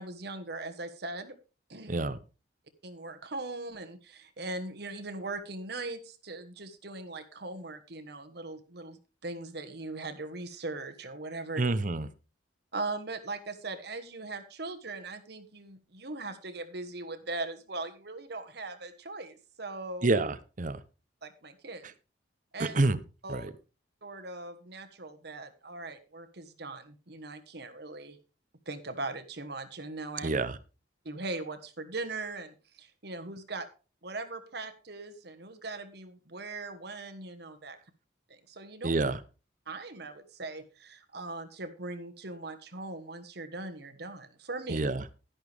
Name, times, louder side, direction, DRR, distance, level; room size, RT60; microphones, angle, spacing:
voice 1, 0.0-1.4 1.7-2.0 2.8-11.7 12.7-20.1 21.2-21.9 22.5-22.8 23.2-23.5 24.0-28.2 28.6-30.3 31.0-33.7 34.0-37.8 38.3-39.0 39.7-44.8, right 2 dB, 60° right, 10 dB, 1.4 m, -40 dB
voice 2, 1.9-2.2 11.6-12.1 20.0-20.8 22.6-23.0 23.3-23.5 30.2-30.6 38.8-39.2 44.7-45.0, right 2 dB, 45° right, 14 dB, 0.8 m, -28 dB
11.5 x 11.0 x 3.4 m, 0.32 s
head